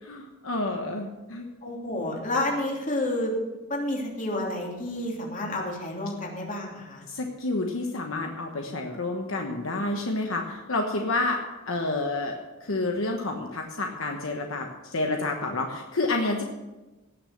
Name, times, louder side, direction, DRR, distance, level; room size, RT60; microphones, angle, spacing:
voice 1, 0.0-1.5 7.1-11.4 11.7-16.4, left 2 dB, 70° left, 3 dB, 1.2 m, -29 dB
voice 2, 1.6-3.3 3.7-7.1, left 1 dB, 40° left, -1 dB, 3.0 m, -30 dB
18.0 x 6.7 x 6.5 m, 1.1 s
head